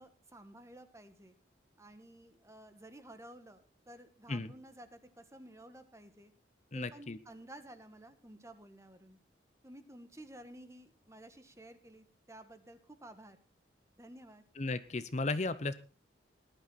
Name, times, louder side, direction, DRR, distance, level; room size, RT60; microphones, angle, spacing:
voice 1, 0.0-1.3 1.8-6.3 6.7-9.2 9.6-13.4 14.0-14.4, right 1 dB, 15° right, 10 dB, 1.4 m, -53 dB
voice 2, 6.7-7.2 14.6-15.7, left 3 dB, 40° left, 13 dB, 0.8 m, -35 dB
18.5 x 11.5 x 4.1 m, 0.35 s
head